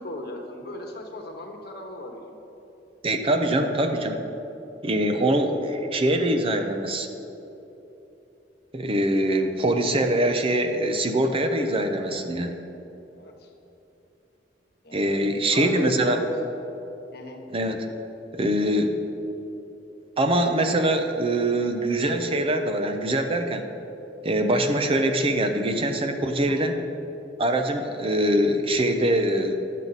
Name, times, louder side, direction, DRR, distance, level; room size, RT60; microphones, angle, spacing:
voice 1, 0.0-2.3 13.2-13.5 14.8-16.5 17.1-17.4 26.4-26.7, left 1 dB, 60° left, 2 dB, 1.1 m, -37 dB
voice 2, 3.0-4.2 4.8-7.1 8.7-12.5 14.9-16.2 17.5-17.9 18.3-19.0 20.2-23.7 24.2-26.8 27.4-29.5, right 1 dB, 30° right, 6 dB, 0.6 m, -23 dB
10.5 x 7.3 x 4.0 m, 3.0 s
head